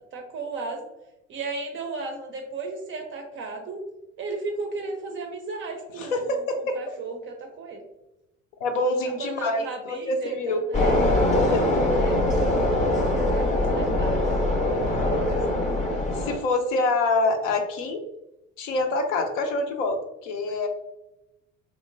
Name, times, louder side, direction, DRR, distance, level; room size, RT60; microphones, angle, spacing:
voice 1, 0.1-0.9 1.3-3.8 4.2-7.8 9.0-11.1 11.9-15.7, right 3 dB, 30° right, 3 dB, 0.4 m, -35 dB
voice 2, 6.0-6.8 8.6-10.6 11.3-11.8 16.1-18.0 18.6-20.7, left 2 dB, 75° left, 5 dB, 0.5 m, -26 dB
sound 1, 10.7-16.4, left 1 dB, 20° left, 0.5 m, -23 dB
2.8 x 2.0 x 2.5 m, 0.91 s
figure-of-eight pair, 55°, 39 cm